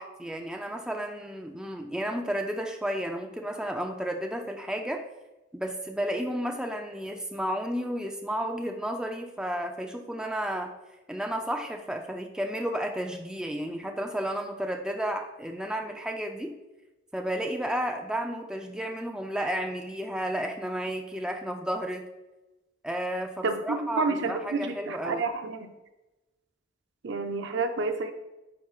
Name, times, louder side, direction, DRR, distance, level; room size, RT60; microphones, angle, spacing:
voice 1, 0.0-5.0 5.5-10.7 11.1-16.5 17.1-22.1 22.8-25.3, equal, 5° right, 3 dB, 0.4 m, -32 dB
voice 2, 23.4-25.7 27.0-28.1, right 3 dB, 60° right, 7 dB, 0.6 m, -29 dB
9.4 x 4.4 x 2.4 m, 1.0 s
head